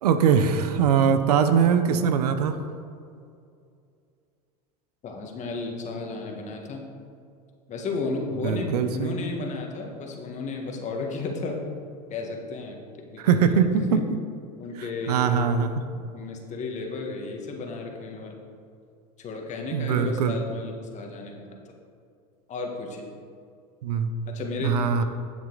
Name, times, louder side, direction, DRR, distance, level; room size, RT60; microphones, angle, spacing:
voice 1, 0.0-2.6 8.4-9.1 13.2-14.0 15.1-15.7 19.7-20.4 23.8-24.1 24.6-25.0, right 7 dB, 85° right, 9 dB, 0.8 m, -22 dB
voice 2, 5.0-6.9 7.7-11.6 12.1-12.8 13.1-14.0 14.6-15.5 16.1-18.4 19.2-21.7 22.5-23.1 24.3-25.0, left 3 dB, 40° left, 1 dB, 1.7 m, -33 dB
10.0 x 7.3 x 4.0 m, 2.3 s
supercardioid pair, 105°, 20 cm